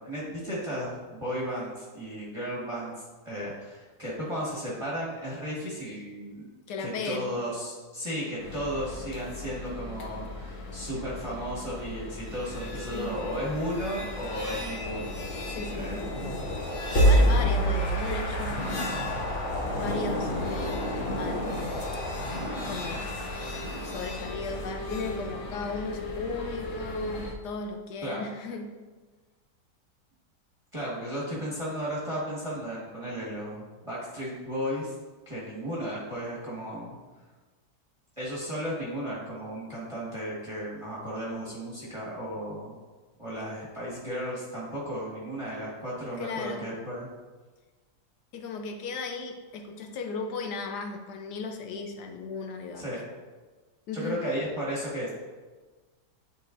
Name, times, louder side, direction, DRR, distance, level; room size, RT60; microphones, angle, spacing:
voice 1, 0.0-2.9 3.2-6.4 6.8-15.1 15.7-16.0 17.1-17.3 28.0-28.2 30.7-34.9 35.2-37.0 38.2-42.8 43.2-47.1 52.8-53.0 53.9-55.1, equal, 20° right, -7 dB, 1.4 m, -34 dB
voice 2, 6.7-7.2 12.9-13.1 15.5-16.1 16.7-18.7 19.8-20.9 21.2-21.7 22.0-22.2 22.6-23.1 23.8-28.7 46.2-46.6 48.3-52.9 53.9-54.2, left 4 dB, 75° left, 4 dB, 1.3 m, -36 dB
On a platform at Stuttgart station, 8.4-27.3, left 2 dB, 60° left, 1.0 m, -39 dB
sound 1, 12.3-25.1, equal, 35° left, 1.2 m, -29 dB
10.5 x 4.1 x 2.6 m, 1.3 s
omnidirectional pair, 1.8 m